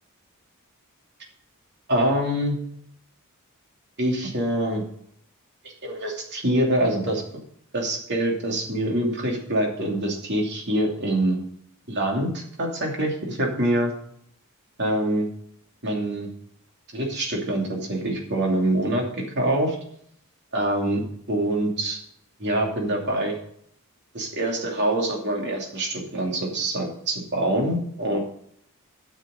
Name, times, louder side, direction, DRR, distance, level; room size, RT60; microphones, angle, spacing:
voice 1, 1.9-2.6 4.0-4.8 5.8-7.2 7.7-11.4 11.9-13.9 14.8-15.3 15.8-16.3 16.9-19.1 19.4-19.8 20.5-21.0 21.3-22.0 22.4-23.4 24.1-28.2, right 1 dB, 50° right, 0 dB, 2.7 m, -25 dB
9.4 x 6.6 x 6.4 m, 0.67 s
head